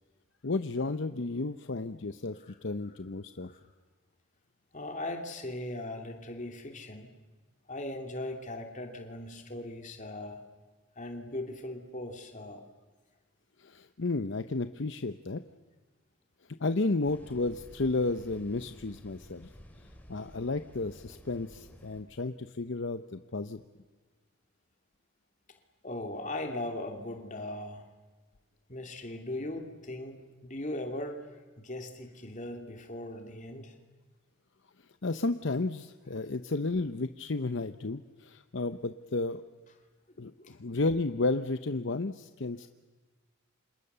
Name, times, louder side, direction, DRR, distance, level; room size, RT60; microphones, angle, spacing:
voice 1, 0.4-3.5 13.6-15.4 16.6-19.5 20.1-23.6 35.0-39.4 40.2-42.7, left 3 dB, 60° left, 10 dB, 0.8 m, -32 dB
voice 2, 2.5-2.9 3.4-3.6 4.7-7.1 7.7-10.4 11.0-12.6 25.8-27.9 28.7-33.8 40.4-40.5, left 1 dB, 35° left, 4 dB, 2.8 m, -39 dB
sound 1, 17.0-22.0, equal, 10° left, 3.0 m, -53 dB
29.5 x 27.0 x 6.9 m, 1.3 s
head